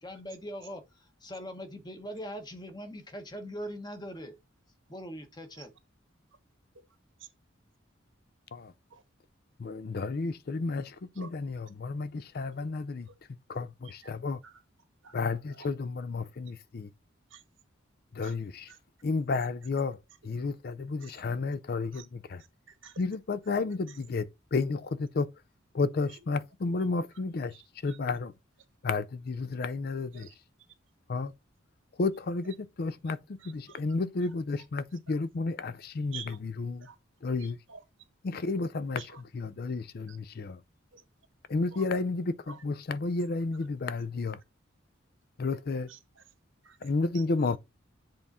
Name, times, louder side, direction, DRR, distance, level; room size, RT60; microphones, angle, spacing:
voice 1, 0.0-4.4 4.9-5.7, equal, 20° left, 1.0 m, -41 dB
voice 2, 9.6-13.1 13.5-14.4 15.1-16.9 18.1-18.7 19.0-22.4 23.0-25.3 25.7-27.5 27.8-28.3 28.8-30.3 31.1-31.3 32.0-36.9 37.2-37.6 38.2-39.0 39.3-40.6 41.5-44.4 45.4-45.9 46.8-47.6, left 3 dB, 50° left, 0.4 m, -32 dB
voice 3, 22.4-23.0 23.9-24.0 26.1-26.2 27.1-27.2 27.5-28.0 30.1-30.3 32.4-32.5 33.4-33.8 34.2-34.3 35.1-35.2 36.1-36.4 36.8-37.0 37.4-37.8 38.9-39.2 40.1-40.2 40.9-41.0 41.7-41.8 42.5-42.6 45.9-46.2 46.6-46.8 47.1-47.6, right 7 dB, 80° right, 1.3 m, -50 dB
7.8 x 3.6 x 4.1 m
head